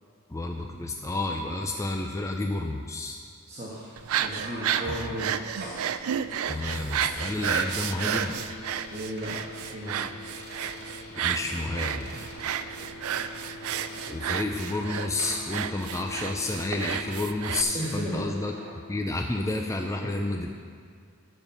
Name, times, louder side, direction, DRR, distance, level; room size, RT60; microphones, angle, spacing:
voice 1, 0.3-3.2 4.9-5.1 6.5-8.4 11.1-12.2 14.1-18.5 18.9-20.5, left 2 dB, 15° left, 2 dB, 0.4 m, -30 dB
voice 2, 3.5-5.8 8.9-10.0 17.7-18.3 20.0-20.1, right 1 dB, 30° right, -7 dB, 1.5 m, -35 dB
sound 1, 4.0-17.6, right 9 dB, 70° right, 0.4 m, -32 dB
sound 2, 4.3-5.2 5.6-5.9 6.5-7.1 7.4-7.8 8.2-8.4 8.7-8.8 9.2-9.4 9.8-10.0 10.3-11.1 11.4-11.7 12.0-13.5 13.7-14.2 14.5-14.8 15.2-16.6 17.0-17.2 17.5-18.0 18.4-18.7, right 2 dB, 45° right, 1.9 m, -44 dB
sound 3, 7.1-19.0, left 4 dB, 75° left, 0.7 m, -45 dB
12.0 x 4.6 x 7.0 m, 2.2 s
head